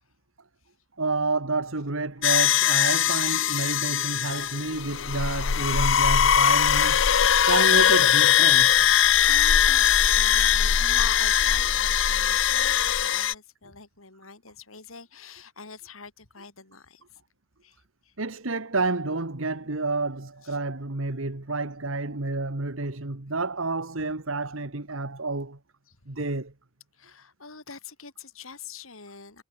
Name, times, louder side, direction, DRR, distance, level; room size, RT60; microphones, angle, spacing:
voice 1, 1.0-8.9 18.2-25.6 26.1-26.5, right 3 dB, 80° right, 1.8 m, -29 dB
sound 1, 2.2-13.3, left 9 dB, 70° left, 0.7 m, -21 dB
voice 2, 8.9-17.2 17.6-18.1 20.4-20.6 25.9-26.0 26.9-29.4, left 5 dB, 85° left, 4.4 m, -44 dB
head